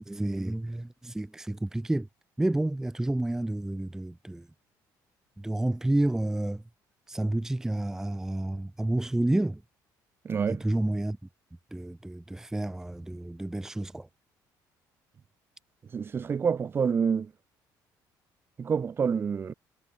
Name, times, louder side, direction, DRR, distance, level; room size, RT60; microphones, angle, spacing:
voice 1, 0.1-2.1 2.4-4.5 5.4-6.6 7.1-9.6 10.5-11.2 11.7-14.1, right 1 dB, 5° right, 1.0 m, -30 dB
voice 2, 10.2-10.6 15.9-17.3 18.6-19.5, right 6 dB, 30° right, 2.1 m, -27 dB
cardioid pair, 145°, 8 cm